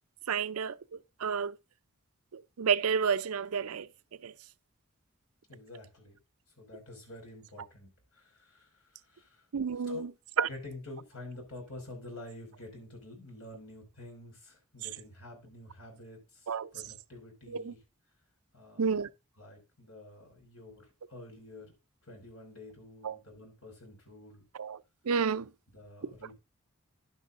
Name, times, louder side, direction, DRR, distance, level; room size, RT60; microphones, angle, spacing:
voice 1, 0.3-0.8 1.2-1.6 2.3-3.9 4.2-4.3 9.5-10.1 10.4-10.5 14.8-14.9 16.5-16.7 17.5-17.7 18.8-19.1 23.0-23.2 24.5-24.8 25.1-25.5 26.0-26.1, right 6 dB, 75° right, 0.5 m, -30 dB
voice 2, 5.5-6.2 6.6-9.4 9.9-10.0 10.5-17.8 18.5-18.9 19.4-20.8 21.1-21.7 22.1-24.4 25.7-26.4, left 2 dB, 70° left, 5.4 m, -48 dB
11.0 x 10.0 x 2.5 m
head